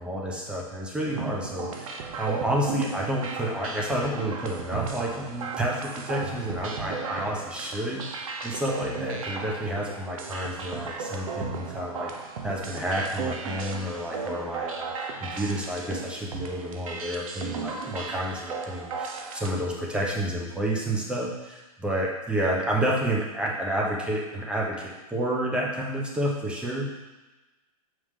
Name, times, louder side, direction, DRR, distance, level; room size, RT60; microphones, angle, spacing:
voice 1, 0.0-12.1 12.4-26.9, right 1 dB, 5° right, -2 dB, 0.9 m, -30 dB
sound 1, 1.1-19.5, right 5 dB, 60° right, 0.9 m, -35 dB
7.1 x 4.9 x 3.7 m, 1.1 s
hypercardioid pair, 150°, 20 cm